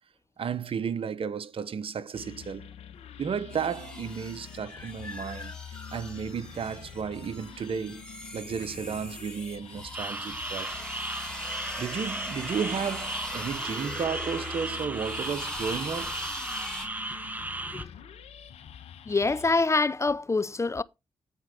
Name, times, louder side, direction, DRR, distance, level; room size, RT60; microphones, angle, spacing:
voice 1, 0.4-2.7 3.2-8.0 8.3-10.8 11.8-16.2, right 6 dB, 60° right, 1.0 m, -33 dB
sound 1, 2.1-19.6, left 8 dB, 75° left, 1.3 m, -46 dB
sound 2, 3.5-16.9, equal, 5° left, 4.0 m, -41 dB
voice 2, 4.8-5.9 16.6-17.2 17.7-17.9 19.1-20.8, left 3 dB, 25° left, 0.5 m, -28 dB
sound 3, 9.9-17.8, right 2 dB, 15° right, 0.9 m, -36 dB
9.6 x 4.5 x 5.0 m
hypercardioid pair, 40°, 11 cm